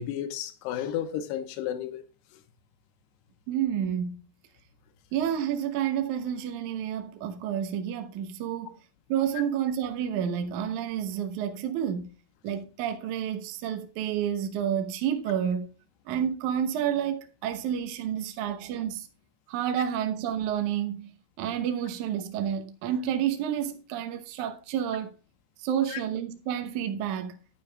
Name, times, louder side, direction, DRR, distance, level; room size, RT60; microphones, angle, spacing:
voice 1, 0.0-2.0 25.9-26.0, left 10 dB, 80° left, 3.1 m, -32 dB
voice 2, 3.5-4.2 5.1-8.8 9.1-12.1 12.4-15.7 16.1-19.1 19.5-21.1 21.4-25.2 25.6-27.4, right 9 dB, 75° right, 1.8 m, -30 dB
12.0 x 9.2 x 2.3 m
omnidirectional pair, 4.9 m